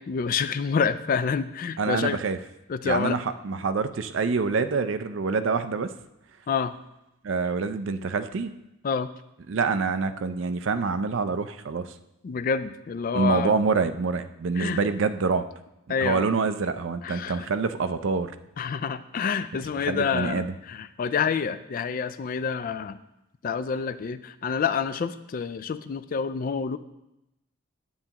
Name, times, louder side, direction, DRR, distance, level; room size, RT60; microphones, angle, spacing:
voice 1, 0.0-2.2 2.7-3.2 6.5-6.7 8.8-9.1 12.2-13.5 14.6-14.8 15.9-16.3 17.0-17.5 18.6-23.0 23.4-26.8, left 6 dB, 40° left, 13 dB, 0.3 m, -28 dB
voice 2, 1.8-2.4 2.8-5.9 7.2-8.5 9.5-11.9 13.1-15.5 16.0-18.4 19.7-20.5, right 4 dB, 65° right, 10 dB, 0.4 m, -26 dB
9.5 x 7.9 x 2.9 m, 0.89 s
head